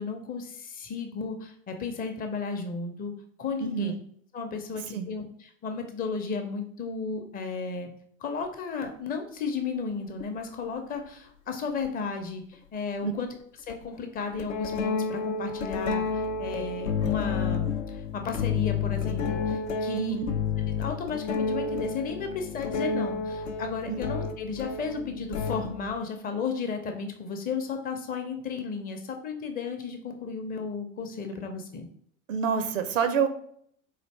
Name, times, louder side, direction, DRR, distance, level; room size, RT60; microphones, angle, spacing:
voice 1, 0.0-3.9 4.3-5.2 5.6-7.9 8.2-13.3 13.7-20.2 20.7-31.9, left 5 dB, 20° left, 5 dB, 0.5 m, -34 dB
voice 2, 3.6-4.0 4.9-5.1 13.0-13.1 19.9-20.3 23.9-24.0 32.3-33.3, right 7 dB, 75° right, 9 dB, 0.5 m, -28 dB
sound 1, 10.2-10.3 11.8-11.9 13.7-13.8 14.4-26.0, left 5 dB, 75° left, 0.5 m, -30 dB
4.0 x 2.6 x 3.2 m, 0.64 s
figure-of-eight pair, 80°, 40 cm